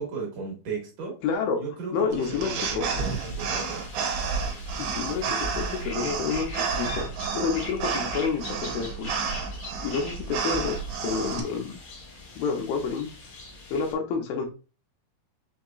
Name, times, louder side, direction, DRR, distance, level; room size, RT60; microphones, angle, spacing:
voice 1, 0.0-1.2 1.6-3.9 6.9-7.1, right 4 dB, 65° right, 2.4 m, -36 dB
voice 2, 1.2-1.6 1.9-2.9 4.8-9.1 9.8-11.8 12.4-13.1 13.7-14.5, left 5 dB, 80° left, 2.4 m, -29 dB
sound 1, 2.1-11.4, right 5 dB, 85° right, 2.8 m, -31 dB
sound 2, 3.0-13.9, left 3 dB, 50° left, 1.4 m, -43 dB
6.1 x 2.8 x 2.3 m
omnidirectional pair, 4.4 m